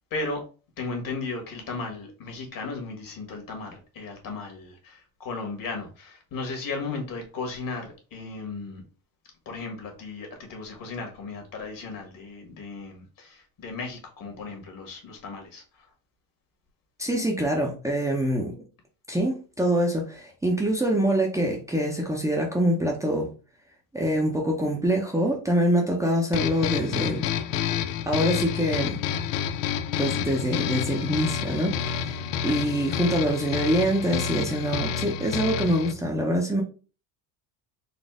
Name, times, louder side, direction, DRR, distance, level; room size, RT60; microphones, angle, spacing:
voice 1, 0.1-0.5 0.8-8.8 9.4-15.9 32.4-32.6, left 3 dB, 50° left, 1.7 m, -35 dB
voice 2, 17.0-18.6 19.1-23.3 23.9-27.3 28.1-29.0 30.0-36.6, equal, 5° right, 0.7 m, -25 dB
sound 1, 26.3-35.9, left 8 dB, 80° left, 0.6 m, -29 dB
4.2 x 2.5 x 3.6 m
cardioid pair, 120°, 42 cm